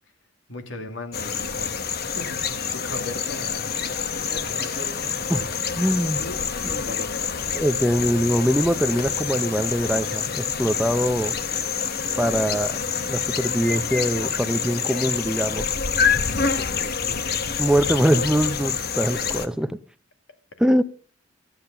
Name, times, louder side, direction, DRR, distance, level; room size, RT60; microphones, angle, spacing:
voice 1, 0.5-5.2 6.2-7.4 12.3-12.6 16.2-17.5, left 1 dB, 85° left, 2.3 m, -39 dB
sound 1, 1.1-19.5, left 6 dB, 55° left, 1.1 m, -27 dB
voice 2, 5.8-6.2 6.6-6.9 7.5-11.4 12.2-12.7 13.1-15.7 17.6-19.8 20.6-20.8, equal, 5° right, 0.5 m, -23 dB
15.0 x 8.9 x 6.6 m
head